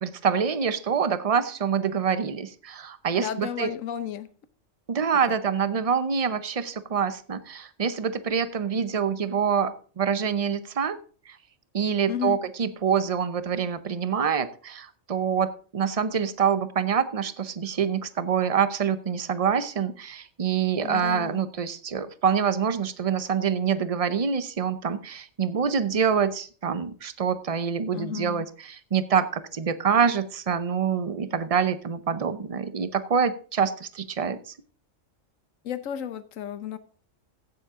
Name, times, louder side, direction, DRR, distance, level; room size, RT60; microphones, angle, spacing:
voice 1, 0.0-3.7 4.9-11.0 11.3-11.4 11.7-34.4, right 7 dB, 40° right, 0.6 m, -26 dB
voice 2, 3.2-4.3 5.3-5.4 12.1-12.4 20.8-21.4 27.9-28.4 35.6-36.8, left 9 dB, 80° left, 1.2 m, -33 dB
15.0 x 7.4 x 3.6 m
omnidirectional pair, 1.4 m